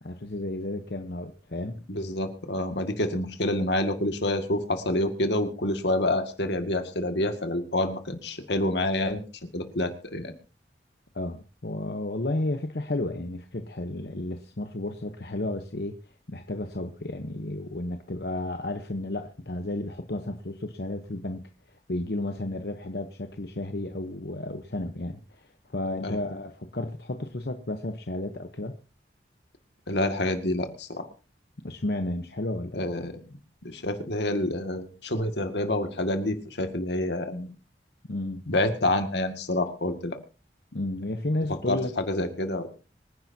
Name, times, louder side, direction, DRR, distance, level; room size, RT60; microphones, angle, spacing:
voice 1, 0.0-1.9 11.1-16.0 16.3-28.7 31.6-32.9 38.1-38.4 40.7-42.0, left 1 dB, 65° left, 1.0 m, -32 dB
voice 2, 1.9-9.2 9.5-10.3 26.0-26.2 29.9-31.1 32.7-33.1 33.6-37.5 38.5-40.2 41.7-42.7, left 1 dB, 80° left, 2.0 m, -28 dB
25.0 x 10.5 x 2.8 m
head